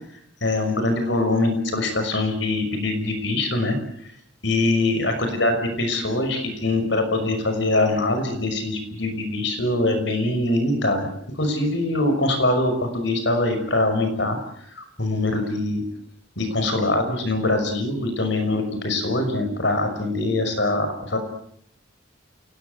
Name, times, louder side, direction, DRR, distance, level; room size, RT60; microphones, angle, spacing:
voice 1, 0.4-3.8 4.4-11.1 11.4-14.4 14.8-15.8 16.4-21.2, left 2 dB, 60° left, 7 dB, 5.9 m, -23 dB
28.0 x 19.0 x 8.2 m, 0.69 s
head